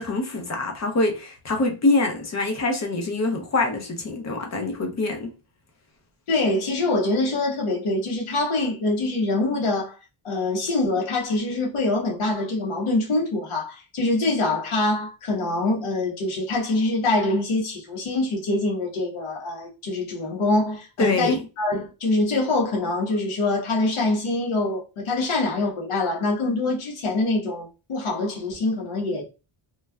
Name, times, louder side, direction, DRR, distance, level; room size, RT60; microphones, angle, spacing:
voice 1, 0.0-5.3 21.0-21.4, left 2 dB, 35° left, 0.6 m, -25 dB
voice 2, 6.3-10.0 10.2-29.2, left 2 dB, 80° left, 1.1 m, -24 dB
3.2 x 2.3 x 2.2 m
wide cardioid pair, 155°, 49 cm